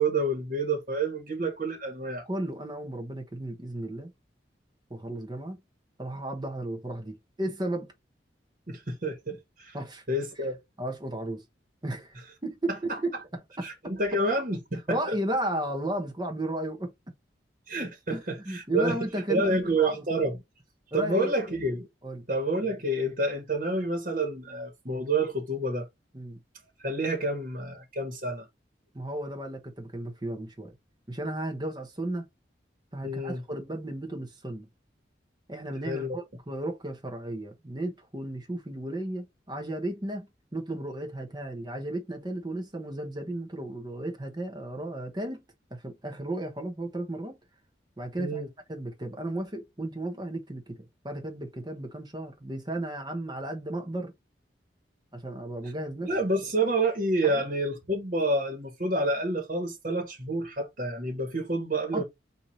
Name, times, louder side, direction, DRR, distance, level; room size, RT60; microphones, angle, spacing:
voice 1, 0.0-2.3 8.7-9.7 10.1-10.6 12.9-13.0 13.6-15.0 17.7-19.0 19.3-20.4 20.9-21.9 22.3-25.9 26.8-28.5 33.0-33.4 35.8-36.2 48.2-48.5 56.0-62.0, right 2 dB, 45° right, 1.5 m, -28 dB
voice 2, 2.3-4.1 4.9-5.6 6.0-7.9 9.7-10.0 10.8-11.4 11.8-12.2 12.4-13.9 14.9-16.9 18.1-20.0 20.9-21.3 22.0-22.2 26.1-26.4 28.9-30.7 31.1-32.3 32.9-34.7 35.5-45.4 45.7-47.4 48.0-54.1 55.1-56.1 57.2-57.4 61.9-62.0, right 1 dB, 25° right, 1.0 m, -34 dB
4.6 x 2.8 x 4.1 m
head